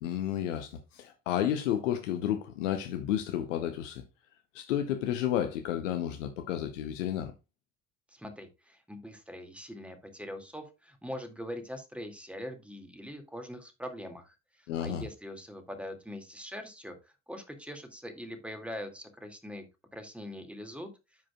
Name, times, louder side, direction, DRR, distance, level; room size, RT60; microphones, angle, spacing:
voice 1, 0.0-4.0 4.5-7.3 14.7-15.0, left 10 dB, 85° left, 0.8 m, -31 dB
voice 2, 8.1-19.6 19.9-20.9, equal, 5° right, 2.2 m, -42 dB
13.0 x 5.0 x 2.3 m
hypercardioid pair, 55°, 37 cm